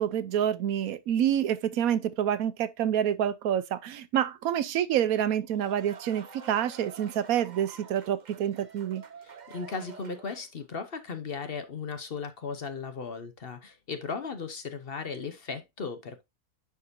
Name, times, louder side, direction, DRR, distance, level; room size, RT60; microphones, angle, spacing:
voice 1, 0.0-9.0, right 10 dB, 70° right, 1.1 m, -27 dB
sound 1, 5.3-10.6, right 5 dB, 40° right, 0.6 m, -48 dB
voice 2, 9.2-16.2, left 5 dB, 45° left, 1.0 m, -37 dB
10.5 x 4.8 x 2.6 m
omnidirectional pair, 1.6 m